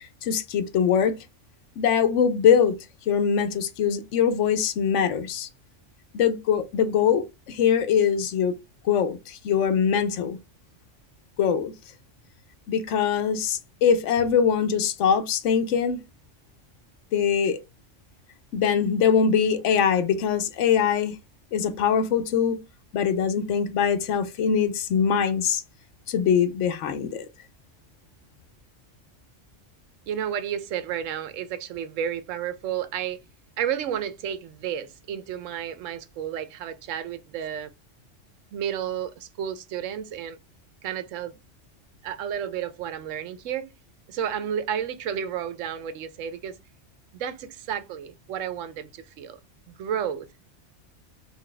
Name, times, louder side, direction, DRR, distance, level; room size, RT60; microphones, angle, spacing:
voice 1, 0.2-1.1 1.8-2.7 3.1-5.5 6.1-8.5 8.8-10.4 11.4-11.7 12.7-16.0 17.1-17.6 18.5-21.1 21.5-22.6 22.9-25.6 26.1-27.3, left 7 dB, 80° left, 1.0 m, -22 dB
voice 2, 30.1-33.2 33.6-37.7 38.5-40.4 40.8-41.4 42.0-43.7 44.1-46.6 47.1-49.4 49.7-50.4, right 9 dB, 90° right, 1.0 m, -31 dB
4.0 x 2.7 x 3.2 m
omnidirectional pair, 1.3 m